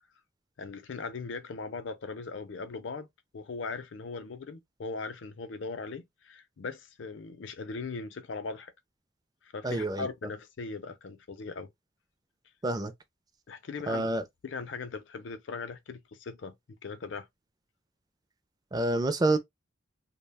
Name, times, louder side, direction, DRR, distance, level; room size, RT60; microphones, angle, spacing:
voice 1, 0.6-3.1 3.3-8.7 9.4-11.7 13.5-16.5 16.8-17.3, left 4 dB, 65° left, 0.5 m, -39 dB
voice 2, 9.6-10.1 12.6-12.9 13.9-14.2 18.7-19.4, right 2 dB, 20° right, 0.4 m, -27 dB
2.3 x 2.1 x 3.3 m
head